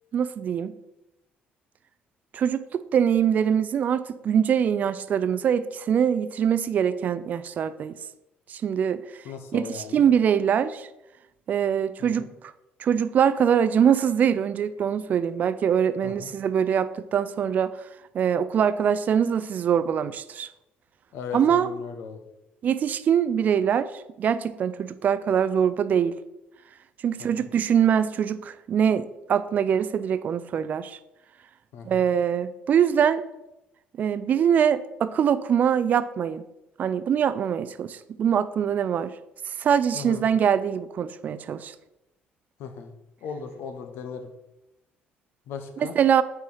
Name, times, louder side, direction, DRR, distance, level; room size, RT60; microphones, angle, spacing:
voice 1, 0.1-0.7 2.3-8.0 8.5-9.0 9.5-10.9 11.5-12.3 12.8-17.7 18.1-20.5 21.3-21.7 22.6-23.9 24.2-26.2 27.0-31.0 31.8-33.2 34.0-36.4 36.8-39.1 39.6-41.7 45.8-46.2, right 8 dB, 45° right, 14 dB, 0.3 m, -23 dB
voice 2, 9.2-10.0 12.0-12.3 16.0-16.3 21.1-22.2 27.2-27.5 31.7-32.1 39.9-40.2 42.6-42.9 43.2-44.3 45.5-46.0, left 6 dB, 75° left, 7 dB, 0.8 m, -37 dB
4.7 x 4.4 x 5.4 m, 0.92 s
cardioid pair, 145°, 4 cm